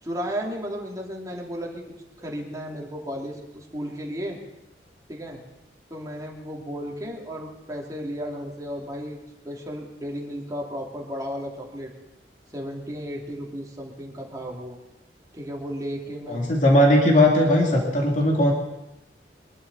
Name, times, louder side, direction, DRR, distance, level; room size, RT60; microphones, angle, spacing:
voice 1, 0.0-1.8 2.2-4.4 5.1-5.4 5.9-9.2 9.4-11.9 12.5-14.8 15.3-16.4, equal, 20° right, -2 dB, 2.8 m, -34 dB
voice 2, 16.3-18.5, left 1 dB, 45° left, -1 dB, 2.7 m, -18 dB
23.0 x 12.0 x 4.2 m, 0.94 s
head